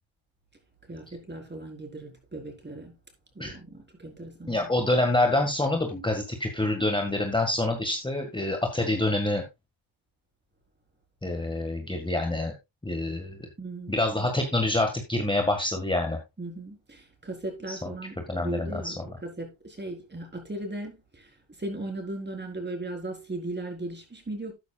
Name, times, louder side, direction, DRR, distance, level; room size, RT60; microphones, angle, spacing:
voice 1, 0.9-2.9 3.4-4.7 13.6-14.0 16.4-21.3 21.6-24.5, right 2 dB, 20° right, 4.0 m, -37 dB
voice 2, 4.5-9.4 11.2-12.5 12.8-13.5 13.9-16.2 17.7-19.0, left 2 dB, 10° left, 1.6 m, -27 dB
12.5 x 9.4 x 2.3 m
cardioid pair, 95°, 46 cm